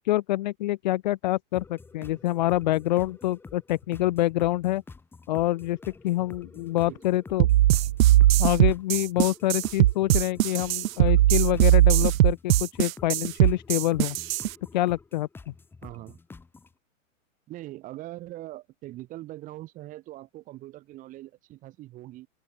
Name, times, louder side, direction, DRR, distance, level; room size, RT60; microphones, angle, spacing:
voice 1, 0.0-4.8 5.3-5.8 6.0-7.5 8.4-14.2 14.7-15.3, left 16 dB, 35° left, 0.8 m, -26 dB
sound 1, 1.5-16.7, left 4 dB, 5° left, 1.9 m, -48 dB
voice 2, 6.9-7.2 15.8-16.2 17.5-22.3, right 16 dB, 20° right, 2.5 m, -42 dB
sound 2, 7.4-14.5, right 14 dB, 90° right, 0.6 m, -20 dB
open air
hypercardioid pair, 165°, 39 cm